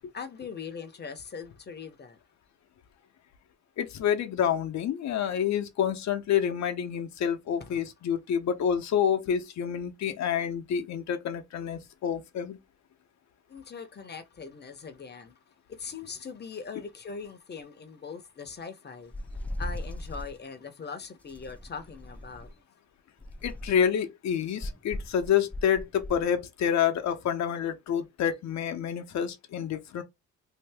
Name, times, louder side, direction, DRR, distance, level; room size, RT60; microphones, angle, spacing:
voice 1, 0.1-2.2 13.5-15.4 15.7-19.1 19.6-22.5, left 5 dB, 35° left, 0.8 m, -41 dB
voice 2, 3.8-12.6 23.4-30.0, left 8 dB, 65° left, 0.8 m, -28 dB
sound 1, 19.1-20.4 21.3-22.6 23.2-23.9 24.6-26.2, left 1 dB, 5° left, 0.5 m, -38 dB
2.8 x 2.6 x 3.3 m
cardioid pair, 90°, 30 cm